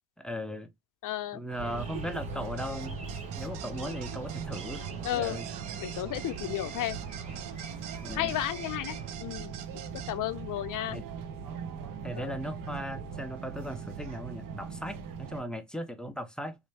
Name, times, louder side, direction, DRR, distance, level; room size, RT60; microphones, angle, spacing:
voice 1, 0.2-0.7 1.3-3.0 3.4-4.8 5.1-5.5 8.0-8.3 10.9-11.0 12.0-16.6, equal, ahead, 0.4 m, -37 dB
voice 2, 1.0-1.4 5.0-5.4 5.8-7.0 8.1-9.5 10.1-11.0 12.2-12.4, left 13 dB, 55° left, 0.6 m, -33 dB
sound 1, 1.5-9.1, right 2 dB, 20° right, 0.9 m, -49 dB
sound 2, 1.6-15.4, right 6 dB, 55° right, 0.8 m, -40 dB
sound 3, 2.6-10.1, right 12 dB, 90° right, 0.7 m, -45 dB
3.2 x 2.6 x 3.2 m
cardioid pair, 115°, 39 cm